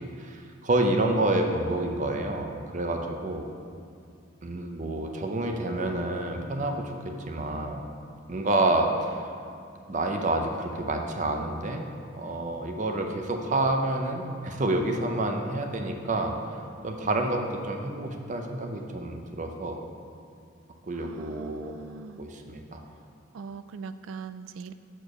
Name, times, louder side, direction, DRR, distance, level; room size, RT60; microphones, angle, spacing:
voice 1, 0.0-3.5 4.4-7.9 8.3-9.2 9.9-11.8 12.1-16.3 16.8-19.8 20.9-21.7 22.2-22.8, right 2 dB, 40° right, 3 dB, 0.6 m, -28 dB
voice 2, 20.9-22.2 23.3-24.7, right 5 dB, 85° right, 12 dB, 0.3 m, -41 dB
6.6 x 4.5 x 6.0 m, 2.4 s
head